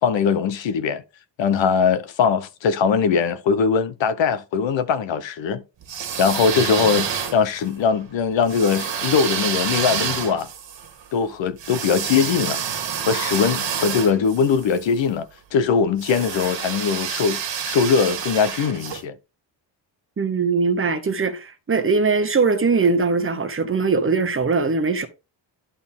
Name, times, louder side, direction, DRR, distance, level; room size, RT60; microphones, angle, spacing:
voice 1, 0.0-1.0 1.4-5.6 6.2-10.5 11.1-12.6 13.0-15.3 15.5-17.4 17.7-19.1, left 6 dB, 90° left, 0.9 m, -21 dB
sound 1, 5.8-7.7 8.5-14.8 16.0-19.0, right 7 dB, 75° right, 1.8 m, -28 dB
voice 2, 20.2-25.1, right 4 dB, 30° right, 0.9 m, -21 dB
11.0 x 4.2 x 3.6 m
wide cardioid pair, 150°, 43 cm